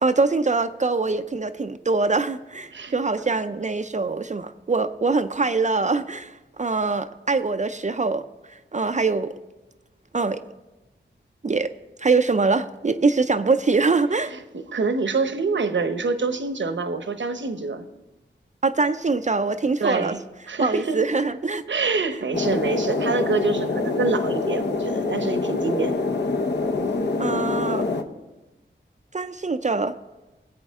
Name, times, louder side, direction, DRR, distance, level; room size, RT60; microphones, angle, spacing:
voice 1, 0.0-8.2 8.7-9.3 10.1-10.4 11.4-11.7 12.0-14.3 18.6-20.2 20.6-21.6 27.2-27.9 29.1-29.9, right 3 dB, 35° right, 9 dB, 0.5 m, -23 dB
voice 2, 14.3-17.8 19.8-21.0 21.7-26.0, right 4 dB, 70° right, 9 dB, 0.9 m, -26 dB
sound 1, 22.3-28.0, left 3 dB, 60° left, 0.9 m, -25 dB
18.5 x 7.9 x 3.6 m, 1.1 s
cardioid pair, 55°, 20 cm